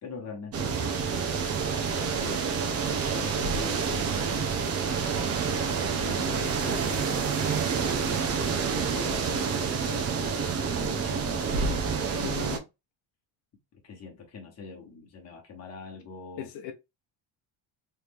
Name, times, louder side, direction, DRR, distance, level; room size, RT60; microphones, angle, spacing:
voice 1, 0.0-2.5 3.1-4.5 5.4-8.4 8.7-11.6 13.7-16.5, left 5 dB, 35° left, 1.3 m, -44 dB
sound 1, 0.5-12.6, right 5 dB, 35° right, 0.7 m, -28 dB
voice 2, 12.1-12.7 16.4-16.7, left 8 dB, 85° left, 0.7 m, -38 dB
3.3 x 2.7 x 3.5 m
cardioid pair, 145°, 44 cm